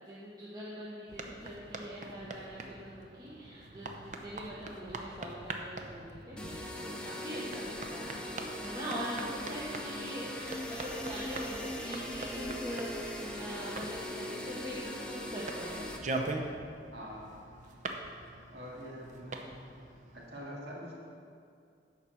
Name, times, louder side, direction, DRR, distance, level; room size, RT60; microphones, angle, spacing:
voice 1, 0.0-8.2 8.6-15.9, equal, 25° right, -8 dB, 1.1 m, -43 dB
sound 1, 1.1-20.3, right 2 dB, 45° right, 0.7 m, -43 dB
sound 2, 6.4-16.0, left 1 dB, 5° left, 0.7 m, -40 dB
voice 2, 16.9-17.3 18.5-19.5 20.1-20.9, equal, 75° right, -5 dB, 2.1 m, -44 dB
11.0 x 4.4 x 7.0 m, 2.3 s
head